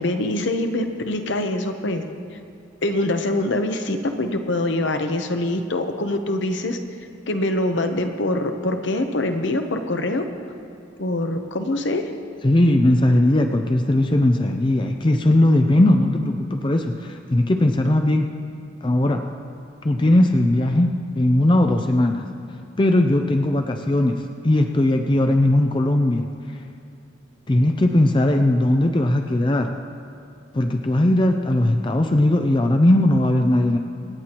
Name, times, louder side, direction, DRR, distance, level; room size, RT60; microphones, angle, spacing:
voice 1, 0.0-2.0 2.8-6.8 7.3-10.2 11.0-12.0, left 1 dB, 65° left, 6 dB, 0.9 m, -24 dB
voice 2, 12.4-18.3 18.8-19.2 19.8-22.3 22.8-26.6 27.5-29.7 30.5-33.8, left 1 dB, 25° left, 5 dB, 0.4 m, -19 dB
26.0 x 9.5 x 3.0 m, 2.6 s
head